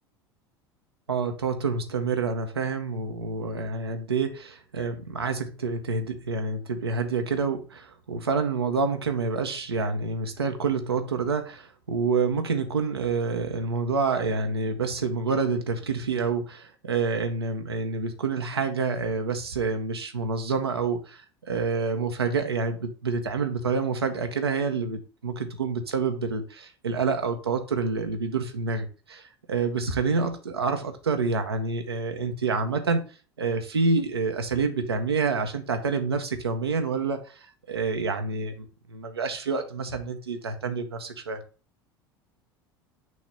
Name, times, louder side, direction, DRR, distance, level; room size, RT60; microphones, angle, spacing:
voice 1, 1.1-33.0 33.4-41.4, right 4 dB, 80° right, 0.7 m, -28 dB
6.1 x 2.9 x 5.2 m
figure-of-eight pair, 75°, 13 cm